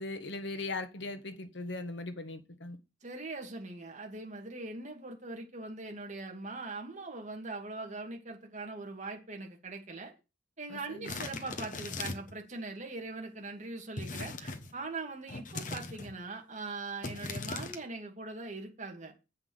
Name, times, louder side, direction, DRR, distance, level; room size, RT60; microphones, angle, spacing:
voice 1, 0.0-2.8 10.7-11.1, left 2 dB, 65° left, 1.3 m, -39 dB
voice 2, 3.0-10.1 10.6-19.1, right 3 dB, 40° right, 2.1 m, -41 dB
sound 1, 11.0-12.4 14.0-14.7 15.3-16.1 17.0-17.8, left 3 dB, 45° left, 1.1 m, -39 dB
8.2 x 5.7 x 7.0 m
head